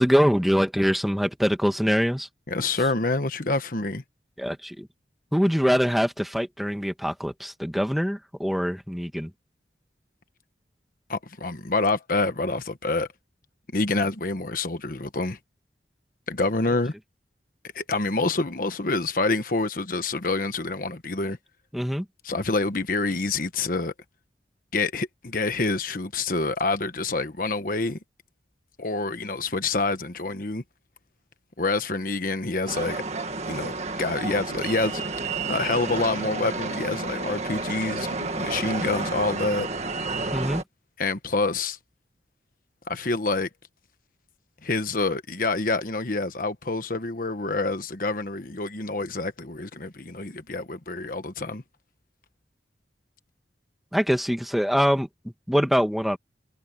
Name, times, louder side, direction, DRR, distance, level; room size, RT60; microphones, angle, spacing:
voice 1, 0.0-2.3 4.4-4.9 5.3-9.3 21.7-22.1 40.3-40.6 53.9-55.1 55.5-56.2, equal, ahead, 1.8 m, -23 dB
voice 2, 2.5-4.0 11.1-13.1 13.7-15.4 16.3-16.9 17.7-21.4 22.2-23.9 24.7-28.0 28.8-30.6 31.6-33.0 33.5-35.0 35.5-39.7 41.0-41.8 42.9-43.5 44.6-51.6, left 3 dB, 50° left, 1.2 m, -27 dB
sound 1, 32.7-40.6, right 3 dB, 40° right, 1.8 m, -31 dB
head